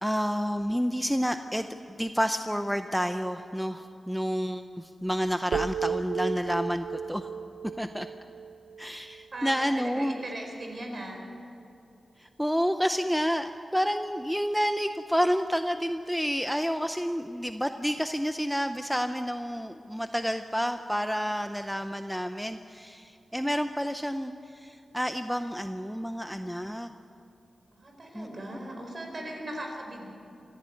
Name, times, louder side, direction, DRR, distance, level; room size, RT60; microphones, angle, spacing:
voice 1, 0.0-7.3 7.8-8.1 8.8-10.1 12.2-26.9 28.1-28.3, equal, ahead, 8 dB, 0.6 m, -29 dB
sound 1, 5.5-9.6, right 6 dB, 90° right, 0.6 m, -35 dB
voice 2, 9.3-11.2 27.7-30.1, right 1 dB, 40° right, 2 dB, 4.8 m, -38 dB
25.5 x 15.0 x 8.4 m, 2.7 s
wide cardioid pair, 125°, 0 cm